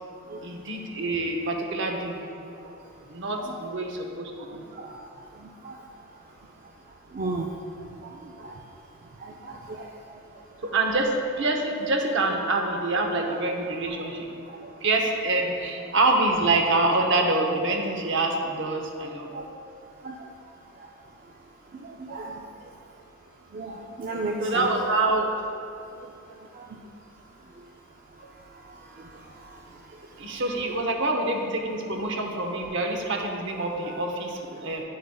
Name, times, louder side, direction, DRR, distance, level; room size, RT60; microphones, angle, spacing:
voice 1, 0.4-2.2 3.1-4.3 10.6-14.3 14.8-19.3 24.4-25.3 30.2-34.8, right 2 dB, 60° right, 2 dB, 0.8 m, -26 dB
voice 2, 4.4-6.1 6.6-6.7 7.1-8.6 9.2-10.2 13.3-13.4 14.4-14.7 19.3-19.5 20.0-20.3 20.8-20.9 21.7-22.7 23.5-24.7 26.0-26.8 27.5-27.7 28.2-30.4 32.0-32.1 33.8-33.9, right 2 dB, 40° right, -1 dB, 0.4 m, -38 dB
10.0 x 6.5 x 2.3 m, 2.7 s
head